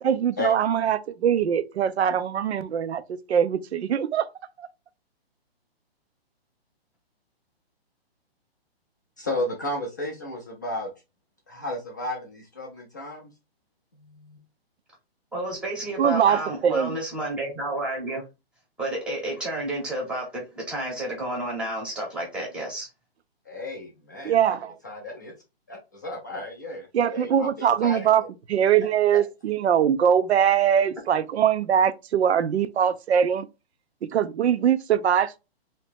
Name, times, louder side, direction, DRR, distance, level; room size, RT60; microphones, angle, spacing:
voice 1, 0.0-4.3 4.6-4.7 16.0-17.0 24.2-24.8 26.9-28.2 28.5-33.5 34.1-35.4, right 8 dB, 90° right, 0.5 m, -22 dB
voice 2, 9.2-10.9 11.5-13.3 13.9-14.4 23.5-24.5 24.8-25.3 25.7-28.0 29.1-29.2, left 1 dB, 20° left, 0.4 m, -33 dB
voice 3, 15.3-18.2 18.8-22.9, right 1 dB, 5° right, 0.8 m, -31 dB
3.0 x 2.8 x 3.3 m
hypercardioid pair, 155°, 31 cm